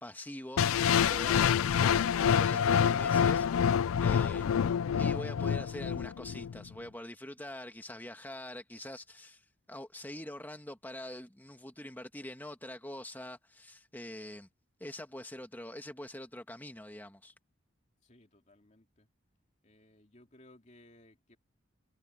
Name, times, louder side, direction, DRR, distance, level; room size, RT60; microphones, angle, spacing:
voice 1, 0.0-3.7 4.0-4.7 5.0-9.4 9.7-14.5 14.8-17.3, left 1 dB, 10° left, 2.0 m, -44 dB
sound 1, 0.6-6.6, left 8 dB, 80° left, 0.4 m, -27 dB
voice 2, 18.0-19.1 19.6-21.4, left 1 dB, 35° left, 2.9 m, -60 dB
head